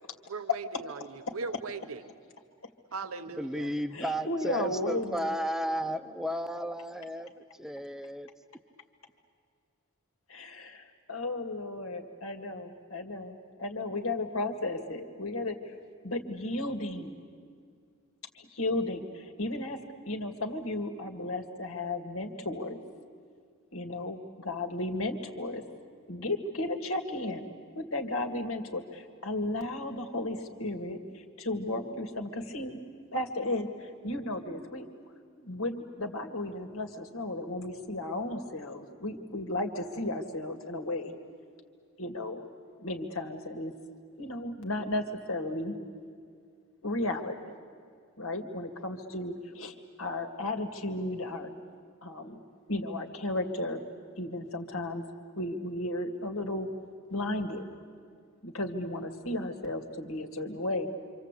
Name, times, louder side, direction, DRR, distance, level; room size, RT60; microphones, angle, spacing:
voice 1, 0.3-2.0 2.9-3.7, right 4 dB, 90° right, 10 dB, 1.0 m, -39 dB
voice 2, 3.4-7.3 7.6-8.3, equal, ahead, 10 dB, 0.8 m, -33 dB
voice 3, 3.9-5.5 10.3-15.6 16.0-17.2 18.3-19.8 20.0-22.8 23.7-25.6 26.1-27.5 27.8-32.8 33.1-34.9 35.4-41.1 42.0-42.4 42.8-43.7 44.2-45.7 46.8-47.5 48.2-51.5 52.0-52.4 52.7-53.8 54.1-55.0 55.4-56.7 57.1-57.6 58.4-61.0, left 2 dB, 80° left, 5 dB, 2.3 m, -34 dB
27.0 x 26.5 x 8.4 m, 2.2 s
head